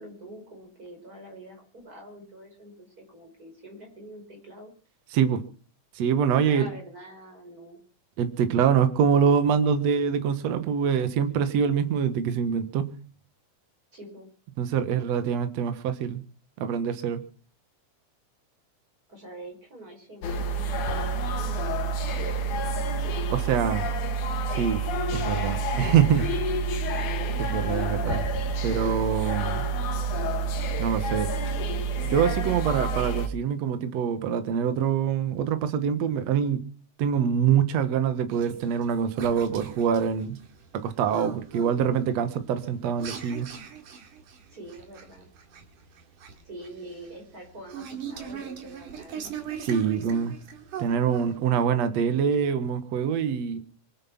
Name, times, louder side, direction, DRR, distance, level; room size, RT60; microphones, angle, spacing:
voice 1, 0.0-4.7 6.4-7.8 13.9-14.3 19.1-21.8 22.2-22.8 44.5-45.3 46.5-49.3, right 1 dB, 25° right, 2 dB, 5.5 m, -45 dB
voice 2, 5.1-5.4 6.0-6.7 8.2-12.9 14.6-16.2 16.6-17.2 23.3-23.9 24.5-24.8 25.1-26.3 27.4-28.3 28.6-29.6 30.8-31.3 32.0-36.6 37.0-40.4 40.7-43.5 49.6-50.3 50.8-53.6, right 7 dB, 65° right, 10 dB, 2.4 m, -25 dB
sound 1, 20.2-33.3, right 3 dB, 75° left, 3.0 m, -28 dB
sound 2, 38.3-51.7, right 8 dB, 90° right, 3.6 m, -40 dB
24.0 x 9.4 x 6.0 m, 0.41 s
omnidirectional pair, 3.5 m